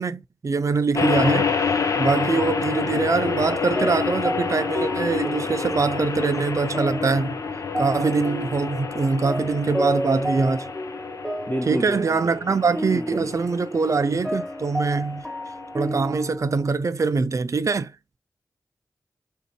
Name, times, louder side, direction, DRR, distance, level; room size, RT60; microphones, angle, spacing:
voice 1, 0.0-1.5 2.0-7.4 7.8-10.7 11.7-15.2 15.7-17.9, right 4 dB, 60° right, 0.5 m, -23 dB
sound 1, 0.9-16.2, left 6 dB, 65° left, 0.6 m, -29 dB
sound 2, 3.2-16.7, equal, ahead, 1.5 m, -32 dB
voice 2, 11.5-12.3 12.9-13.3, equal, 25° left, 1.1 m, -30 dB
3.6 x 2.8 x 4.1 m
cardioid pair, 55°, 6 cm